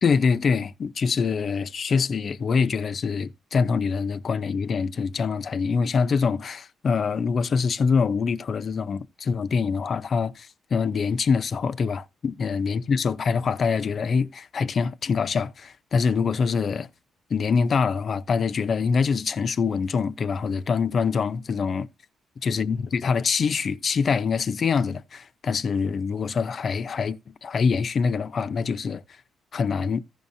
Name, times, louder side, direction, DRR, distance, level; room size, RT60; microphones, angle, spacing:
voice 1, 0.0-16.9 17.3-21.9 22.4-29.0 29.5-30.0, left 5 dB, 50° left, 0.6 m, -24 dB
15.0 x 5.5 x 2.6 m
cardioid pair, 90°, 0 cm